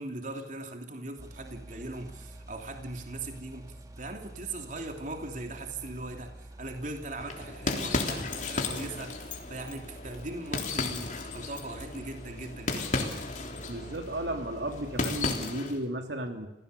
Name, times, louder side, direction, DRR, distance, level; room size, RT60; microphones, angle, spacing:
voice 1, 0.0-13.1, right 2 dB, 45° right, 4 dB, 3.1 m, -40 dB
sound 1, 1.2-15.4, right 1 dB, 20° right, 2.2 m, -48 dB
sound 2, 7.2-15.8, left 3 dB, 45° left, 3.5 m, -34 dB
voice 2, 13.7-16.5, right 1 dB, 75° right, 4 dB, 3.0 m, -34 dB
28.0 x 18.0 x 7.0 m, 0.94 s
head